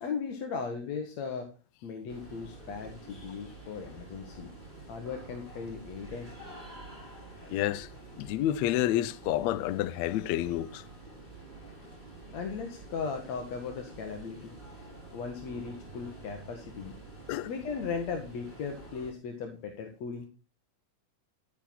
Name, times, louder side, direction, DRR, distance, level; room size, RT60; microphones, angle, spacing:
voice 1, 0.0-1.5 1.8-4.5 4.9-6.3 12.3-14.5 15.1-16.9 17.5-20.3, left 5 dB, 55° left, 2.7 m, -37 dB
sound 1, 2.1-19.1, right 2 dB, 15° right, 7.0 m, -48 dB
voice 2, 7.5-7.9 8.2-10.8 17.3-17.5, left 13 dB, 85° left, 1.5 m, -29 dB
14.5 x 7.5 x 5.9 m
omnidirectional pair, 4.0 m